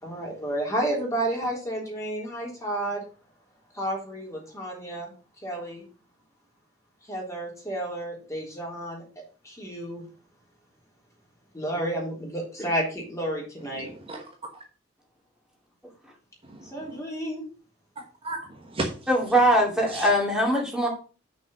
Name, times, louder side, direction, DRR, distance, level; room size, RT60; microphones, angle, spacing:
voice 1, 0.0-3.0 3.7-5.1 5.4-5.8 7.1-9.0 9.4-10.0 11.5-13.9 16.6-17.4, right 1 dB, 15° left, -2 dB, 3.5 m, -31 dB
voice 2, 13.8-14.2 14.5-14.6 16.4-17.0 18.0-19.1 19.9-20.1, right 2 dB, 30° right, 2 dB, 1.2 m, -35 dB
voice 3, 19.1-20.9, equal, 5° right, -1 dB, 2.5 m, -21 dB
6.3 x 5.4 x 6.1 m, 0.36 s
head